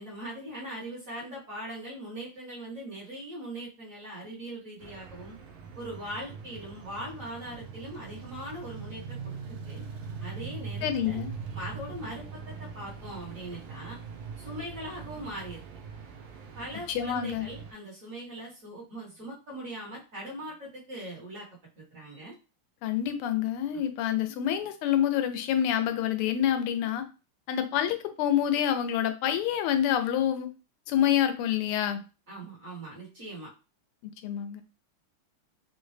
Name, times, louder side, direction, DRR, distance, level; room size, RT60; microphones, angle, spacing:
voice 1, 0.0-5.3 5.7-9.8 10.2-11.2 11.5-14.0 14.4-15.6 16.5-21.5 21.8-22.3 23.7-23.8 32.3-33.5, right 1 dB, 40° right, -4 dB, 1.5 m, -40 dB
sound 1, 4.8-17.7, right 5 dB, 85° right, 0.8 m, -42 dB
voice 2, 10.8-11.3 16.9-17.5 22.8-27.0 27.5-30.5 30.9-32.0 34.2-34.6, left 10 dB, 90° left, 9 dB, 1.5 m, -27 dB
4.2 x 2.1 x 3.2 m, 0.31 s
omnidirectional pair, 2.4 m